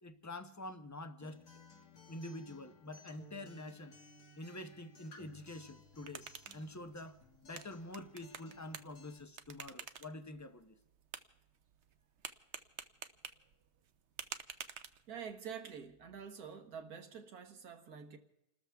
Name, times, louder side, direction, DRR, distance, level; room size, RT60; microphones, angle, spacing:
voice 1, 0.0-1.4 2.1-4.0 4.4-6.3 6.5-10.8, left 1 dB, 15° left, 0.6 m, -47 dB
Acoustic guitar, 1.2-9.2, left 2 dB, 80° left, 2.7 m, -59 dB
sound 1, 5.7-15.4, right 7 dB, 55° right, 1.0 m, -51 dB
voice 2, 15.1-18.2, right 7 dB, 70° right, 1.8 m, -47 dB
30.0 x 13.5 x 3.5 m
omnidirectional pair, 1.7 m